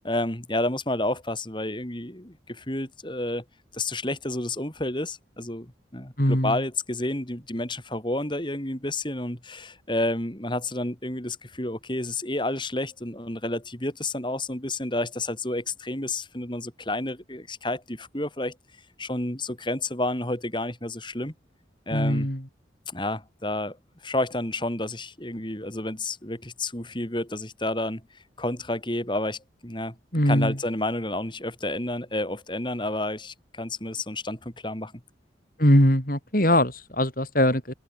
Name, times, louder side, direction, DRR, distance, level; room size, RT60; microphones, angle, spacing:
voice 1, 0.0-3.4 3.7-18.6 19.0-21.3 21.9-22.3 22.9-23.8 24.0-28.0 28.4-30.0 30.2-34.9, left 1 dB, 25° left, 4.3 m, -30 dB
voice 2, 6.2-6.6 21.9-22.4 30.1-30.6 35.6-37.7, left 1 dB, 45° left, 7.6 m, -21 dB
open air
head